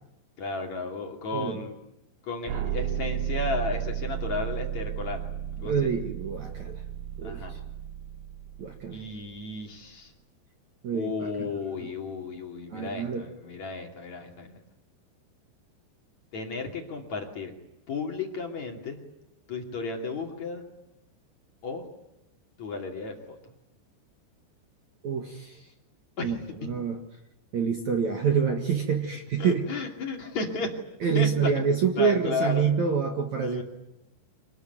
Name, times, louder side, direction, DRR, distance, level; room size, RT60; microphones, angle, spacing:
voice 1, 0.4-1.8 2.2-5.2 5.6-5.7 7.2-7.6 8.9-10.1 10.9-14.6 16.3-17.5 17.9-19.0 19.5-20.6 21.6-21.8 22.6-23.4 26.2-26.4 29.4-30.7 31.1-31.5 32.0-32.7 33.4-33.6, left 4 dB, 45° left, 2 dB, 3.5 m, -33 dB
sound 1, 2.5-9.4, right 10 dB, 80° right, 4.4 m, -33 dB
voice 2, 5.6-6.8 7.2-7.4 8.6-9.0 10.8-11.1 11.4-11.5 12.7-13.2 25.0-25.6 26.2-26.4 26.6-27.0 27.5-29.7 31.0-33.6, right 6 dB, 50° right, 3 dB, 2.5 m, -26 dB
26.0 x 20.0 x 9.5 m, 0.88 s
omnidirectional pair, 5.1 m